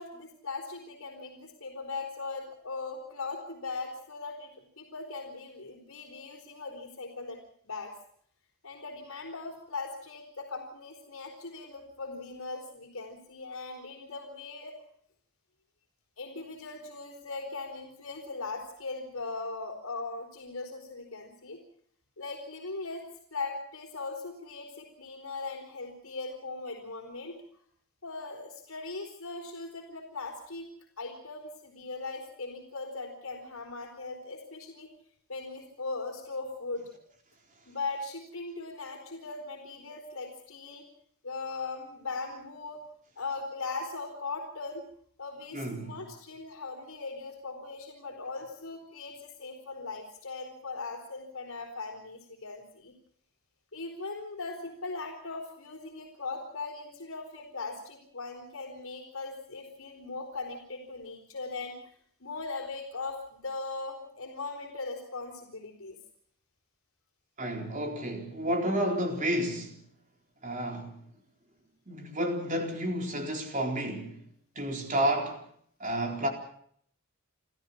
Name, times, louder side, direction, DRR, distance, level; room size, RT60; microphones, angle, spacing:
voice 1, 0.0-7.9 8.6-14.8 16.2-21.6 22.2-23.0 23.3-27.4 28.0-30.7 31.0-34.9 35.3-36.9 37.7-40.8 41.2-42.8 43.2-44.9 45.2-52.9 53.7-61.8 62.2-66.0, left 3 dB, 65° left, 4.3 m, -39 dB
voice 2, 45.5-45.9 67.4-69.8 70.4-70.9 71.9-74.2 74.6-75.4 75.8-76.3, right 1 dB, 35° right, 4.1 m, -31 dB
29.5 x 14.0 x 7.2 m
head